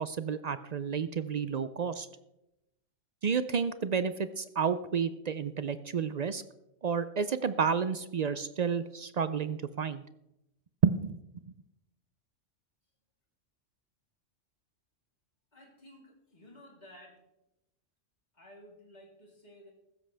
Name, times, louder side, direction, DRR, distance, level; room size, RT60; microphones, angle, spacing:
voice 1, 0.0-2.1 3.2-6.4 6.8-10.0 10.8-11.2, right 6 dB, 60° right, 13 dB, 0.4 m, -30 dB
voice 2, 15.5-17.2 18.3-19.7, equal, 35° left, -2 dB, 3.4 m, -54 dB
15.5 x 13.0 x 3.4 m, 0.87 s
omnidirectional pair, 1.3 m